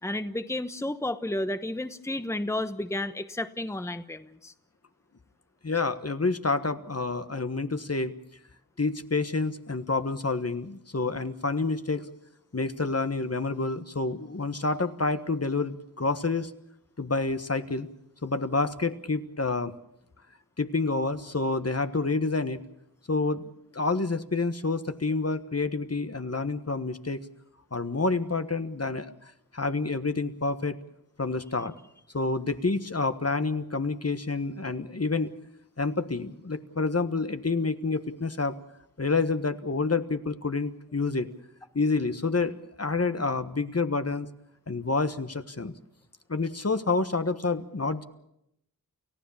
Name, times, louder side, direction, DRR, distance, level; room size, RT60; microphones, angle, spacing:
voice 1, 0.0-4.5, left 1 dB, 10° left, 10 dB, 1.0 m, -32 dB
voice 2, 5.6-8.1 8.8-12.0 12.5-16.5 17.0-17.9 18.2-19.7 20.6-22.6 23.1-23.4 23.7-27.2 27.7-29.1 29.5-30.8 31.2-31.7 32.1-35.3 35.8-38.6 39.0-41.3 41.7-42.5 42.8-44.3 44.7-45.7 46.3-48.0, left 3 dB, 45° left, 10 dB, 1.3 m, -28 dB
29.5 x 15.5 x 7.2 m, 0.79 s
wide cardioid pair, 55°, 35 cm